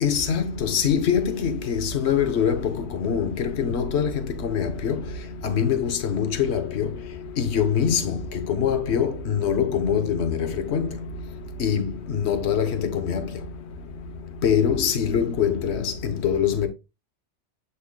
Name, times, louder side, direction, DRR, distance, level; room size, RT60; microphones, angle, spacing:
voice 1, 0.0-4.1 4.4-5.0 5.4-6.9 7.4-8.2 8.5-10.9 11.6-13.2 14.4-16.7, left 7 dB, 65° left, 1.2 m, -23 dB
8.4 x 5.6 x 2.2 m
omnidirectional pair, 1.2 m